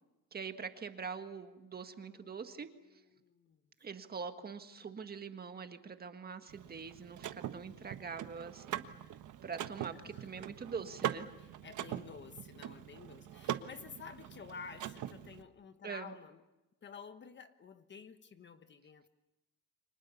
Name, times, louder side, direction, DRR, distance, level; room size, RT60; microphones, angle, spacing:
voice 1, 0.3-2.7 3.8-8.9 9.4-11.3 15.8-16.1, right 5 dB, 25° right, 1.7 m, -44 dB
voice 2, 1.8-3.6 9.9-10.5 11.3-16.4 16.8-19.1, left 6 dB, 30° left, 1.3 m, -52 dB
Car / Mechanisms, 6.5-15.4, right 11 dB, 55° right, 1.4 m, -42 dB
29.5 x 25.5 x 7.0 m
cardioid pair, 150°, 37 cm